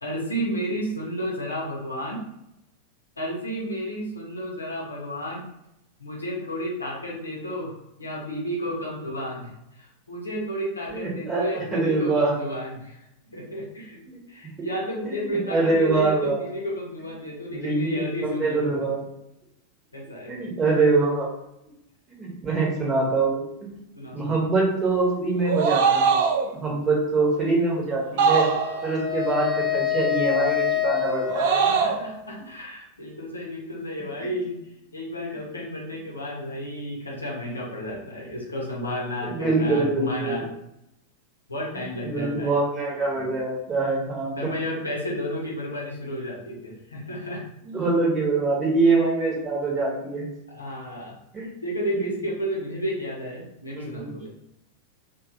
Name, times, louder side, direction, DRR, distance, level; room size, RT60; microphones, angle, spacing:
voice 1, 0.0-2.2 3.2-5.5 6.0-13.0 13.3-14.0 14.3-18.8 19.9-20.5 23.9-24.4 26.6-26.9 31.6-34.6 34.9-40.5 41.5-42.5 43.1-43.4 44.4-47.4 50.5-51.2 51.6-54.3, equal, 80° left, -3 dB, 0.7 m, -32 dB
voice 2, 10.9-12.3 14.1-14.2 15.0-16.4 17.5-19.0 20.3-21.3 22.1-23.8 24.1-26.2 26.6-28.5 28.8-31.6 34.2-34.3 39.2-40.4 42.0-44.5 47.6-50.3 51.3-51.5 53.8-54.1, right 3 dB, 20° right, -3 dB, 0.9 m, -24 dB
sound 1, 25.4-26.5 28.2-28.9 31.2-32.0, right 5 dB, 50° right, 0.3 m, -21 dB
Wind instrument woodwind instrument, 28.2-32.4, left 11 dB, 15° left, 1.1 m, -27 dB
3.0 x 2.3 x 2.4 m, 0.83 s
figure-of-eight pair, 90°, 0 cm